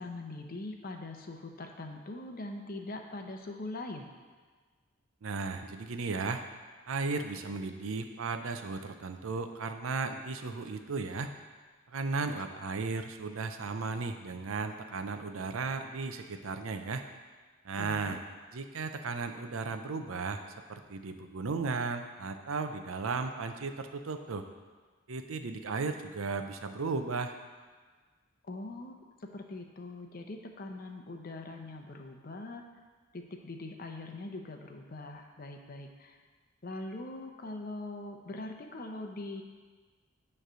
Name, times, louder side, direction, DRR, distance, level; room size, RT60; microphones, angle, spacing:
voice 1, 0.0-4.1 17.7-18.2 28.4-29.0 29.2-32.6 33.1-36.2 36.6-39.4, left 2 dB, 45° left, 4 dB, 0.6 m, -42 dB
voice 2, 5.2-6.4 6.9-11.3 11.9-17.0 17.6-18.2 18.5-20.4 20.7-24.4 25.1-27.3, right 4 dB, 80° right, 7 dB, 0.6 m, -35 dB
9.1 x 3.3 x 6.2 m, 1.4 s
head